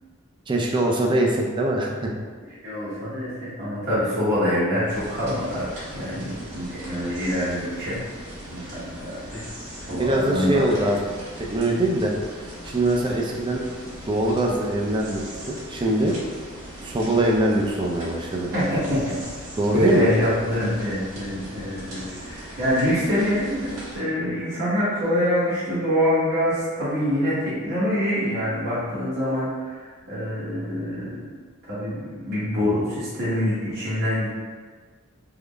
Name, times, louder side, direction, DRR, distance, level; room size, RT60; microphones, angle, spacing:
voice 1, 0.5-2.1 10.0-11.0 11.5-12.1 12.4-13.6 14.1-15.2 15.5-16.1 16.8-18.5 19.5-20.1, right 1 dB, 25° right, -1 dB, 0.4 m, -22 dB
voice 2, 2.6-5.7 5.9-8.0 8.5-9.4 9.9-10.9 18.5-19.2 19.7-31.3 31.7-34.3, equal, 50° right, -11 dB, 1.1 m, -25 dB
sound 1, 4.9-24.0, equal, 85° right, 1.4 m, -39 dB
3.7 x 2.0 x 3.3 m, 1.5 s
head